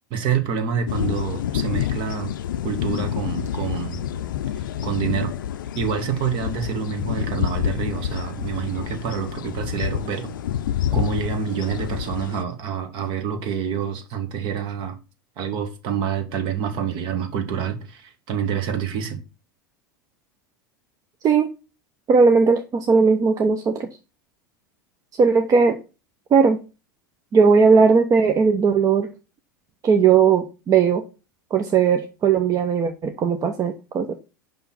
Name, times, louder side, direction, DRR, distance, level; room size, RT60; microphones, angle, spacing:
voice 1, 0.1-2.3 2.6-4.0 4.8-5.3 5.7-10.3 10.9-15.0 15.4-19.2, right 7 dB, 50° right, 1.6 m, -27 dB
sound 1, 0.9-12.4, left 10 dB, 75° left, 0.5 m, -28 dB
voice 2, 22.1-23.9 25.2-25.8 26.3-26.6 27.3-29.1 29.8-31.0 31.5-34.1, right 5 dB, 30° right, 0.8 m, -18 dB
5.6 x 5.6 x 5.8 m
hypercardioid pair, 85°, 11 cm